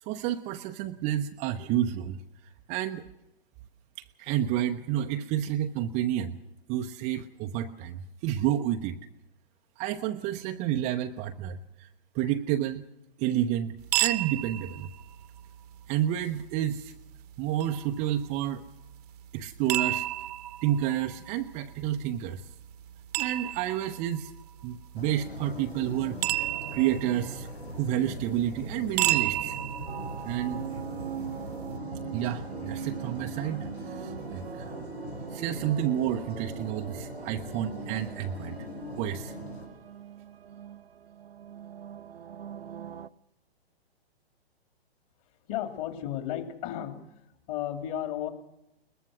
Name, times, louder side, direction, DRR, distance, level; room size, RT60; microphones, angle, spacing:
voice 1, 0.0-3.1 4.0-6.4 6.7-9.0 9.8-11.9 12.1-12.9 13.2-14.9 15.9-16.9 17.4-18.6 19.3-20.1 20.6-22.5 23.2-24.3 24.6-27.5 27.7-29.6 30.2-30.6 32.1-34.7 35.3-38.6 38.9-39.3, right 11 dB, 20° right, 5 dB, 0.7 m, -30 dB
sound 1, 13.8-31.8, right 15 dB, 40° right, 1.1 m, -34 dB
sound 2, 24.9-39.7, left 1 dB, 85° left, 5.6 m, -41 dB
sound 3, 29.9-43.1, right 9 dB, 70° right, 0.7 m, -42 dB
voice 2, 45.5-47.0 47.5-48.3, left 11 dB, 35° left, 6 dB, 2.8 m, -33 dB
22.0 x 20.5 x 6.2 m, 0.87 s
figure-of-eight pair, 115°, 31 cm